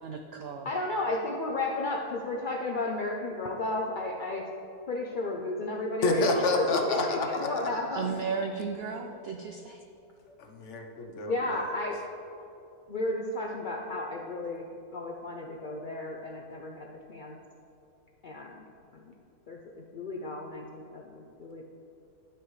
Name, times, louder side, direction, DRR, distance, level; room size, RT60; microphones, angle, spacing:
voice 1, 0.0-0.7 7.9-9.8, right 5 dB, 75° right, 3 dB, 0.5 m, -34 dB
voice 2, 0.6-4.5 4.9-8.1 11.3-12.0 12.9-17.4 18.2-18.7 18.9-19.1 19.5-21.6, left 2 dB, 75° left, 0 dB, 0.4 m, -33 dB
voice 3, 6.0-7.7 10.5-11.4, left 2 dB, 55° left, 3 dB, 1.0 m, -28 dB
12.0 x 5.9 x 3.2 m, 2.7 s
omnidirectional pair, 1.6 m